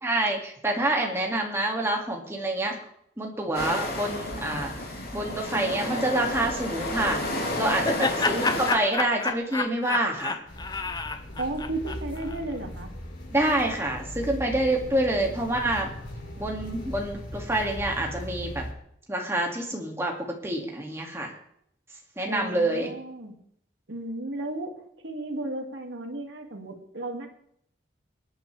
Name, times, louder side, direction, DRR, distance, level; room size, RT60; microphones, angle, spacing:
voice 1, 0.0-2.8 3.2-4.7 5.1-10.4 13.3-15.9 16.4-18.6 19.1-20.1 20.4-21.3 22.2-22.9, right 1 dB, 15° right, 0 dB, 2.2 m, -27 dB
sound 1, 3.5-8.7, left 1 dB, 55° left, 3.2 m, -31 dB
Laughter, 7.2-12.4, left 3 dB, 20° left, 0.7 m, -30 dB
sound 2, 10.5-18.7, left 1 dB, 80° left, 4.2 m, -39 dB
voice 2, 11.4-12.9 15.8-15.9 22.3-23.4 23.9-24.8 25.0-27.3, right 2 dB, 75° right, 3 dB, 2.3 m, -34 dB
24.0 x 9.6 x 3.4 m, 0.71 s
head